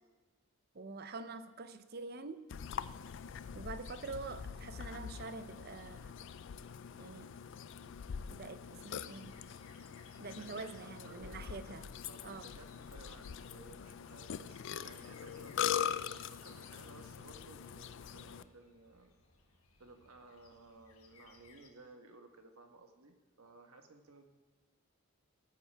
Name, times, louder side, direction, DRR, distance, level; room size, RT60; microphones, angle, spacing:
voice 1, 0.7-2.4 3.6-6.1 7.0-7.3 8.3-9.3 10.2-11.8 12.2-12.5, right 3 dB, 45° right, 11 dB, 0.6 m, -46 dB
Burping eructation, 2.5-18.4, left 8 dB, 55° left, 0.3 m, -42 dB
sound 1, 5.7-21.7, left 4 dB, 75° left, 1.6 m, -65 dB
voice 2, 10.3-15.6 16.0-19.1 19.8-24.3, right 3 dB, 80° right, 5 dB, 1.2 m, -57 dB
19.0 x 9.2 x 3.4 m, 1.2 s
head